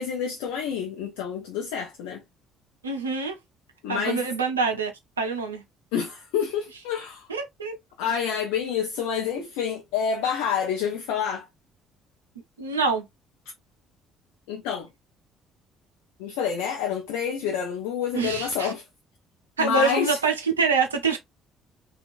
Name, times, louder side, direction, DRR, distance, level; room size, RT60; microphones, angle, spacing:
voice 1, 0.0-2.2 3.8-4.2 5.9-7.3 8.0-11.5 14.5-14.9 16.2-18.8 19.6-20.2, left 7 dB, 65° left, 0.5 m, -28 dB
voice 2, 2.8-3.4 3.9-4.9 5.2-5.6 7.3-7.8 12.6-13.1 18.1-18.7 19.6-21.2, right 4 dB, 80° right, 0.5 m, -25 dB
2.9 x 2.3 x 2.5 m
figure-of-eight pair, 50°, 0 cm